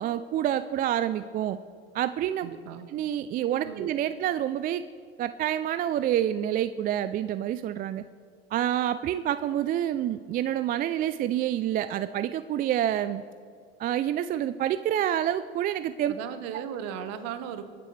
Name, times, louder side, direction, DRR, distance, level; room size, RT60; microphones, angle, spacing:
voice 1, 0.0-1.6 1.9-2.5 2.9-4.8 5.2-8.0 8.5-13.2 13.8-16.1, right 11 dB, 30° right, 13 dB, 0.4 m, -27 dB
voice 2, 2.4-2.9 3.6-3.9 16.1-17.7, right 8 dB, 55° right, 10 dB, 1.3 m, -36 dB
22.0 x 10.0 x 3.2 m, 2.2 s
hypercardioid pair, 90°, 31 cm